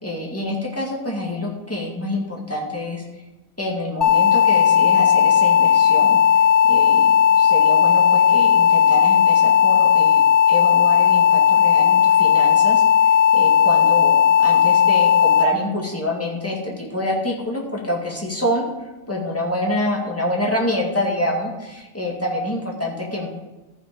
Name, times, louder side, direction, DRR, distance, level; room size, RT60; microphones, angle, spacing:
voice 1, 0.0-3.0 3.6-6.2 6.7-10.2 10.5-12.8 13.3-18.7 19.1-23.3, left 1 dB, 10° left, -3 dB, 1.9 m, -26 dB
sound 1, 4.0-15.4, left 8 dB, 40° left, 1.1 m, -15 dB
13.5 x 6.0 x 5.1 m, 1.1 s
omnidirectional pair, 1.5 m